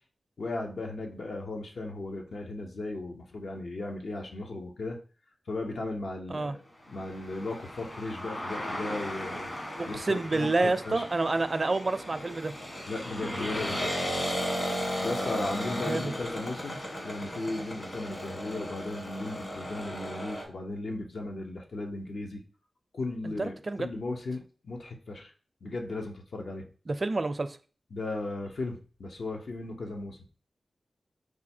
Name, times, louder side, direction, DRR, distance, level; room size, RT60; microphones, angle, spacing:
voice 1, 0.4-5.0 5.5-6.6 6.9-9.5 9.8-11.0 12.9-14.2 15.0-16.8 17.0-22.4 22.9-25.3 25.6-26.7 27.9-30.2, left 2 dB, 75° left, 0.8 m, -36 dB
sound 1, 7.0-20.4, equal, 40° left, 1.4 m, -35 dB
voice 2, 9.8-12.5 15.8-16.1 23.2-23.9 26.9-27.6, right 3 dB, 45° right, 0.4 m, -28 dB
4.7 x 2.3 x 4.3 m
cardioid pair, 55°, 0 cm